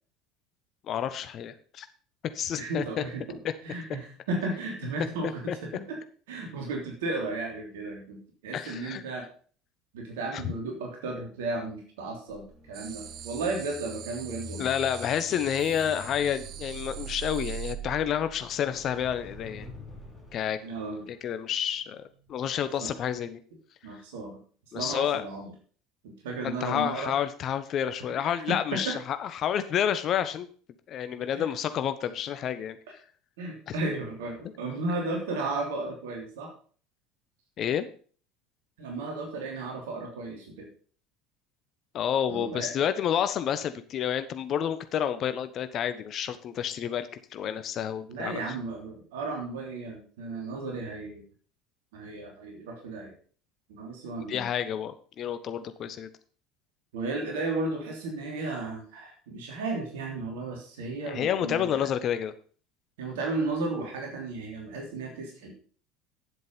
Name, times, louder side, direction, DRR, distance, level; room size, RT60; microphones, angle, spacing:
voice 1, 0.9-1.9 2.3-3.0 5.5-5.6 8.5-9.0 10.3-10.4 14.6-19.7 20.3-20.6 21.1-23.4 24.7-25.2 26.4-30.5 30.9-32.8 37.6-37.9 41.9-48.4 54.3-56.1 61.1-62.3, left 9 dB, 45° left, 11 dB, 1.1 m, -29 dB
voice 2, 2.6-3.4 3.6-6.0 6.3-9.2 9.9-14.7 20.6-21.1 22.8-22.9 23.8-24.4 24.7-25.5 26.0-27.1 28.2-29.0 31.3-31.5 33.4-36.5 38.8-40.7 42.3-42.7 48.1-51.2 51.9-53.1 53.7-54.5 56.9-61.9 63.0-65.5, right 2 dB, 65° right, 1 dB, 3.2 m, -34 dB
sound 1, 12.4-22.6 23.0-23.2, right 5 dB, ahead, 3.8 m, -44 dB
sound 2, 12.7-17.8, right 10 dB, 45° right, 0.9 m, -44 dB
10.5 x 7.7 x 5.5 m, 0.43 s
figure-of-eight pair, 70°, 0 cm